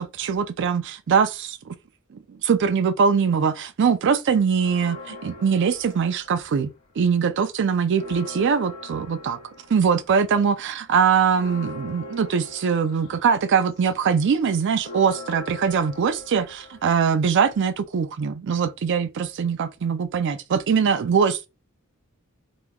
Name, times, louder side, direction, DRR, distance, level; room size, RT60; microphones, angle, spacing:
voice 1, 0.0-1.7 2.1-6.7 7.0-9.4 9.7-21.5, right 6 dB, 60° right, 0.4 m, -22 dB
sound 1, 4.5-6.9 7.3-17.8, left 2 dB, 75° left, 1.0 m, -42 dB
3.5 x 2.9 x 2.2 m
head